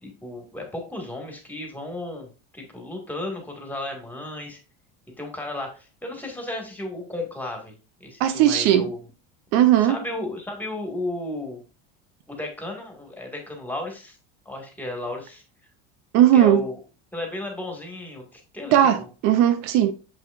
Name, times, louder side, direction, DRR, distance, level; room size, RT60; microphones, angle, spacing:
voice 1, 0.0-2.3 2.5-4.6 5.2-9.1 9.8-11.6 12.3-14.2 14.5-15.4 16.3-16.8 17.1-19.1, left 2 dB, 5° left, 2.0 m, -34 dB
voice 2, 8.2-8.9 9.5-10.0 16.1-16.6 18.7-19.9, right 11 dB, 60° right, 0.6 m, -17 dB
7.0 x 6.3 x 2.5 m
supercardioid pair, 130°, 30 cm